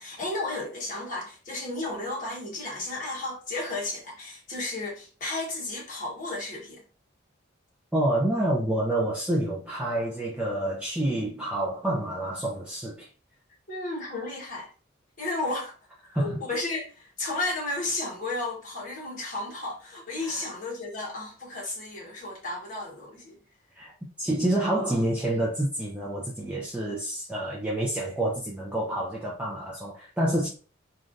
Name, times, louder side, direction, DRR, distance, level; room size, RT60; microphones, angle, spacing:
voice 1, 0.0-6.8 13.7-14.7 15.2-15.8 16.1-23.4, left 2 dB, 40° left, 1.3 m, -33 dB
voice 2, 7.9-13.1 16.1-16.4 20.2-20.4 23.8-23.9 24.2-30.5, right 1 dB, 5° right, 0.4 m, -28 dB
3.2 x 2.5 x 2.6 m
head